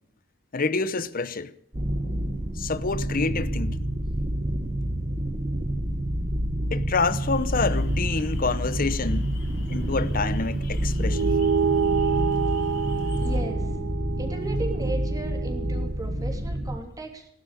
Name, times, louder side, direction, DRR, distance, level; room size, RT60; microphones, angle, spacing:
voice 1, 0.5-1.5 2.6-3.9 6.7-9.3 9.7-11.3, left 4 dB, 40° left, 0.8 m, -27 dB
sound 1, 1.7-16.8, right 1 dB, 35° right, 1.4 m, -28 dB
sound 2, 7.0-13.4, left 2 dB, 60° left, 3.8 m, -44 dB
sound 3, 11.1-15.9, right 6 dB, 85° right, 0.5 m, -27 dB
voice 2, 13.2-13.7 14.2-17.3, right 2 dB, 15° right, 3.0 m, -36 dB
17.0 x 12.0 x 6.7 m
head